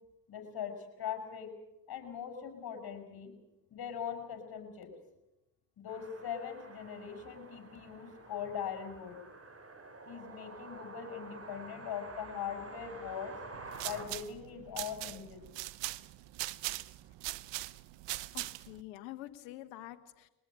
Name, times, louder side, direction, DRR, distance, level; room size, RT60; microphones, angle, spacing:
voice 1, 0.3-0.7 1.0-1.5 1.9-3.3 3.7-4.9 5.8-9.2 10.1-13.4 13.8-15.5, left 8 dB, 55° left, 7 dB, 7.1 m, -41 dB
sound 1, 5.9-14.1, right 3 dB, 30° right, 6.7 m, -49 dB
sound 2, 13.5-18.8, right 19 dB, 70° right, 1.0 m, -41 dB
voice 2, 18.3-20.3, left 15 dB, 85° left, 10 dB, 1.4 m, -47 dB
22.5 x 19.5 x 8.9 m, 0.96 s
hypercardioid pair, 60°, 45 cm